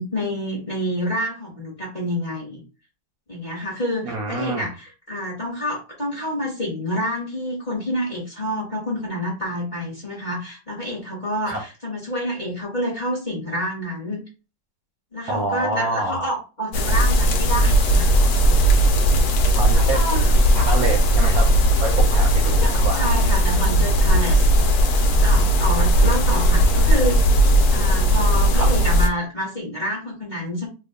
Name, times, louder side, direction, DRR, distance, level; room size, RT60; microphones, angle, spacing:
voice 1, 0.0-2.6 3.3-14.2 15.1-18.1 19.7-20.4 22.6-24.5 25.2-30.7, equal, 30° left, -4 dB, 1.0 m, -28 dB
voice 2, 4.0-4.7 11.5-11.6 15.3-16.3 19.5-20.0 20.5-21.5 21.8-23.1 28.5-28.7, right 3 dB, 65° right, 1 dB, 0.9 m, -27 dB
sound 1, 16.7-29.1, equal, 65° left, 1.0 m, -17 dB
2.9 x 2.3 x 3.6 m, 0.32 s
omnidirectional pair, 2.0 m